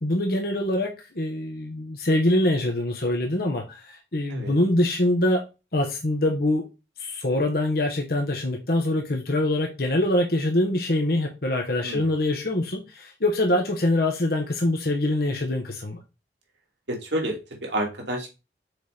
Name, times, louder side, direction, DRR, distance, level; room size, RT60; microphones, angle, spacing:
voice 1, 0.0-5.4 5.7-6.6 7.0-16.0, left 1 dB, 60° left, 2 dB, 1.2 m, -24 dB
voice 2, 16.9-18.3, right 1 dB, 85° right, 1 dB, 2.5 m, -29 dB
6.4 x 4.4 x 5.0 m, 0.27 s
head